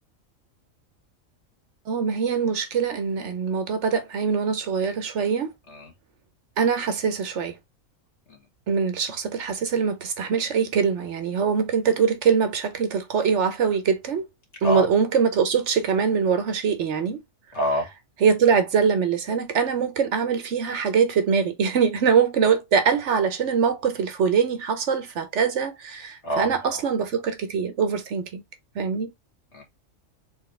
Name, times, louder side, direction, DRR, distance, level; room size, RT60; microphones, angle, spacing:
voice 1, 1.9-5.5 6.6-7.6 8.7-14.3 14.6-17.2 18.2-28.4 28.7-29.1, right 6 dB, 65° right, 1.0 m, -23 dB
voice 2, 17.5-17.9 26.2-26.8 29.5-29.6, equal, 60° left, 2.0 m, -27 dB
4.2 x 3.5 x 3.1 m
omnidirectional pair, 1.4 m